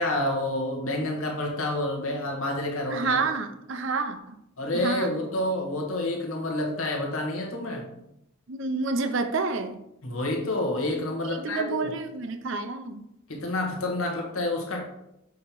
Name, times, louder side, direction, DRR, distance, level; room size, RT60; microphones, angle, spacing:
voice 1, 0.0-3.2 4.6-7.9 10.0-11.9 13.3-14.8, left 1 dB, 75° left, 1 dB, 1.4 m, -29 dB
voice 2, 2.9-4.4 4.7-5.1 8.5-9.8 11.3-13.0, right 4 dB, 60° right, 8 dB, 0.6 m, -29 dB
6.5 x 3.0 x 5.4 m, 0.81 s
head